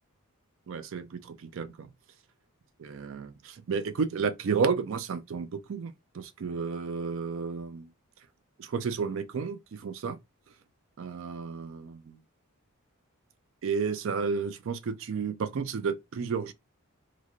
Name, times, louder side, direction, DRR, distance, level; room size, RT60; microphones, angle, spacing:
voice 1, 0.7-1.9 2.8-7.9 8.6-10.2 11.0-12.2 13.6-16.5, right 5 dB, 60° right, 0.4 m, -32 dB
3.0 x 2.5 x 2.4 m
head